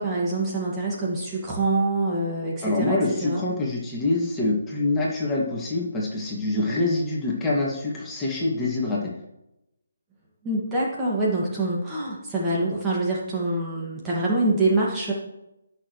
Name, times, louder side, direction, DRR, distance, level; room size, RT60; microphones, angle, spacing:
voice 1, 0.0-3.4 10.4-15.1, right 2 dB, 15° right, -5 dB, 2.0 m, -25 dB
voice 2, 2.6-9.0, left 2 dB, 10° left, -5 dB, 2.3 m, -25 dB
17.0 x 6.6 x 3.3 m, 0.87 s
figure-of-eight pair, 145°, 0 cm